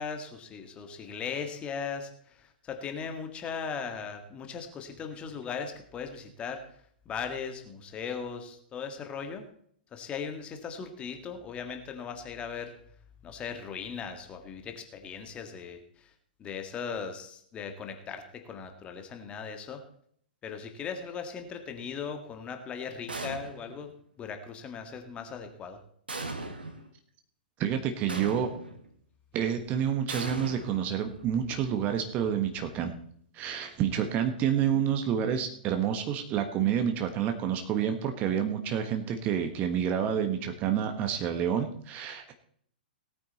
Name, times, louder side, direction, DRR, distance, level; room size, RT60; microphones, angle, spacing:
voice 1, 0.0-6.6 7.1-9.5 9.9-12.7 13.2-16.1 16.4-19.8 20.4-23.9 24.2-25.8, left 6 dB, 20° left, 6 dB, 1.9 m, -38 dB
sound 1, 23.1-23.8 26.1-26.9 28.1-28.9 30.1-31.3, right 2 dB, 80° right, 2.1 m, -38 dB
voice 2, 27.6-28.5 29.3-32.9 33.3-42.3, right 9 dB, 30° right, 6 dB, 1.5 m, -29 dB
18.5 x 9.1 x 4.2 m, 0.62 s
figure-of-eight pair, 110°, 5 cm